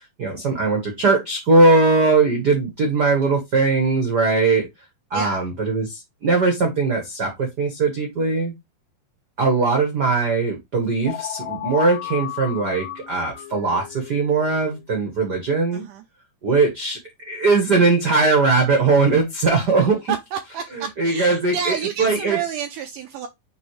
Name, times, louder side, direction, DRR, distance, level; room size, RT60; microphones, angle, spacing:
voice 1, 0.0-4.7 5.1-8.5 9.4-15.8 16.4-17.0 17.2-20.1 20.7-22.4, right 3 dB, 75° right, 0.9 m, -20 dB
sound 1, 11.1-14.8, left 14 dB, 85° left, 3.0 m, -33 dB
voice 2, 20.1-23.3, right 7 dB, 90° right, 1.8 m, -29 dB
9.4 x 3.2 x 3.2 m
omnidirectional pair, 4.2 m